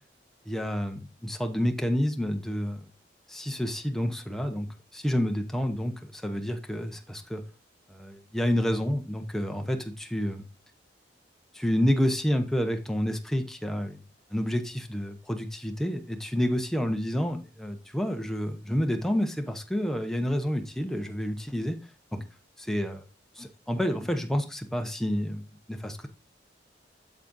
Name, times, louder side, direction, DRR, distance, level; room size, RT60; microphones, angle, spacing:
voice 1, 0.5-2.8 3.3-7.4 7.9-10.5 11.5-14.0 14.3-21.8 22.1-22.2 22.6-23.0 23.4-25.4 25.7-26.1, equal, ahead, 5 dB, 0.8 m, -29 dB
8.2 x 7.3 x 2.6 m, 0.31 s
head